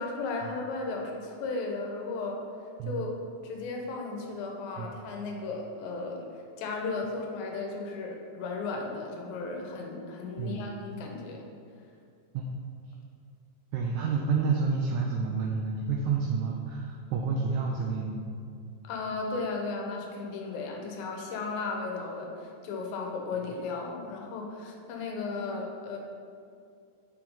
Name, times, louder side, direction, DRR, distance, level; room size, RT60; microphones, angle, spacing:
voice 1, 0.0-2.4 2.9-3.2 3.4-6.3 6.6-11.5 18.8-26.0, left 3 dB, 85° left, 1 dB, 2.7 m, -35 dB
voice 2, 10.4-10.7 12.3-12.5 13.7-18.3, right 5 dB, 85° right, 0 dB, 1.7 m, -29 dB
6.1 x 5.5 x 4.4 m, 2.4 s
omnidirectional pair, 4.0 m